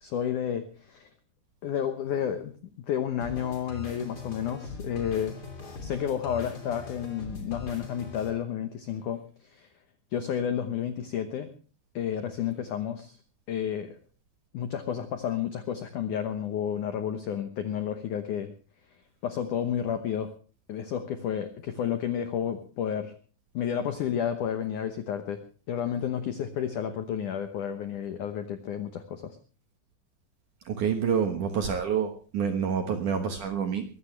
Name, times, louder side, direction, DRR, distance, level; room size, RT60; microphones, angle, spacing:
voice 1, 0.0-1.1 1.6-2.5 2.9-5.4 5.8-9.2 9.5-9.7 10.1-11.5 12.0-13.2 13.5-13.9 14.5-18.5 19.2-20.3 20.7-23.1 23.5-25.4 25.7-29.2, left 9 dB, 85° left, 9 dB, 1.7 m, -31 dB
sound 1, 3.2-8.3, left 3 dB, 25° left, 2.7 m, -41 dB
voice 2, 30.7-33.8, right 7 dB, 65° right, 6 dB, 2.1 m, -27 dB
22.0 x 15.0 x 3.3 m, 0.38 s
omnidirectional pair, 5.3 m